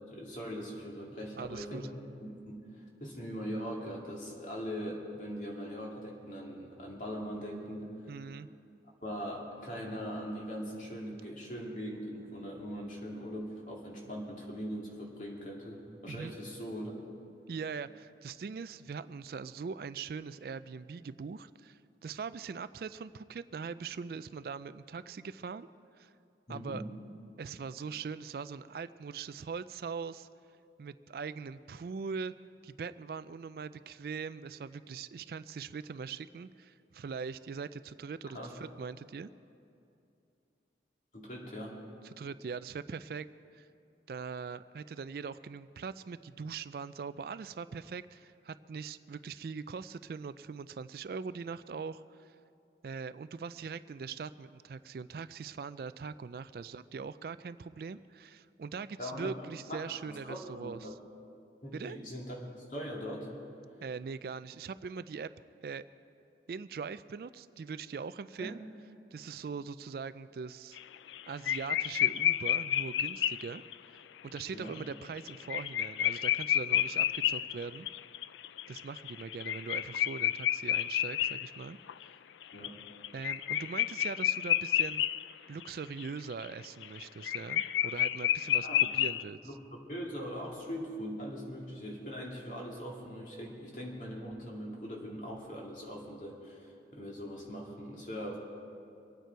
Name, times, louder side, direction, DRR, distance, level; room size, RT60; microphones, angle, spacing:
voice 1, 0.1-8.2 9.0-17.0 26.5-26.8 38.3-38.5 41.1-41.8 59.0-59.3 59.7-60.9 61.6-63.3 68.4-68.5 74.5-74.7 82.5-82.8 88.6-88.9 89.4-89.6 89.9-98.4, equal, 45° left, -2 dB, 2.4 m, -41 dB
voice 2, 1.3-1.8 8.1-8.5 16.1-16.3 17.5-25.7 26.0-26.1 26.5-26.8 27.4-30.3 30.8-32.3 32.6-39.3 42.0-43.3 43.5-43.7 44.1-52.4 52.8-60.9 61.7-62.0 63.8-65.3 65.6-65.8 66.5-68.6 69.1-70.8 71.3-73.6 73.9-77.9 78.7-81.8 83.1-85.0 85.5-89.4, right 5 dB, 55° right, 14 dB, 0.3 m, -41 dB
sound 1, 70.8-71.2 71.5-73.7 74.4-74.5 74.7-74.8 75.2-82.0 82.4-85.3 85.6-85.7 86.0-89.2, left 11 dB, 85° left, 0.3 m, -30 dB
24.5 x 9.2 x 4.6 m, 2.6 s
head